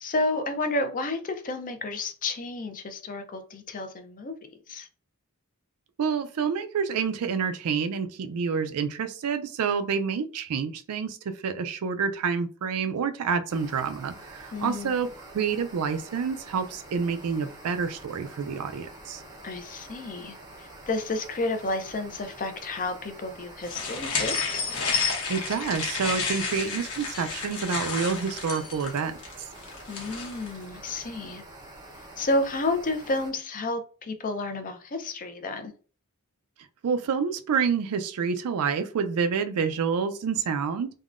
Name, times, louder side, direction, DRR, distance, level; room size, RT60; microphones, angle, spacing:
voice 1, 0.0-4.3 4.7-4.9 14.5-15.0 19.4-24.4 29.9-31.4 32.2-35.7, left 2 dB, 40° left, 0.5 m, -31 dB
voice 2, 6.0-15.1 15.3-19.2 25.3-29.1 36.8-40.9, right 6 dB, 85° right, 0.4 m, -28 dB
sound 1, 13.5-33.3, right 1 dB, 20° right, 0.6 m, -47 dB
sound 2, 23.7-30.5, left 5 dB, 85° left, 0.9 m, -31 dB
3.6 x 2.1 x 2.4 m
head